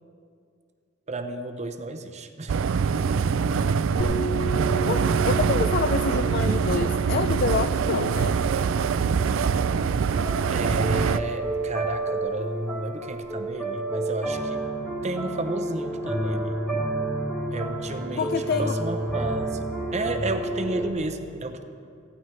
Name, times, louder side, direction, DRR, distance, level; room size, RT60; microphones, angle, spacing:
voice 1, 1.1-2.6 10.5-14.6 15.0-16.6 17.5-19.7 19.9-21.6, right 2 dB, 35° right, 7 dB, 0.7 m, -32 dB
sound 1, 2.5-11.2, right 6 dB, 80° right, 0.4 m, -24 dB
sound 2, 4.0-13.3, right 2 dB, 70° left, 0.8 m, -36 dB
voice 2, 4.7-8.3 18.2-18.8, left 5 dB, 50° left, 9 dB, 0.4 m, -27 dB
sound 3, 10.1-20.9, right 1 dB, ahead, 1.9 m, -30 dB
18.5 x 15.5 x 3.3 m, 2.3 s
head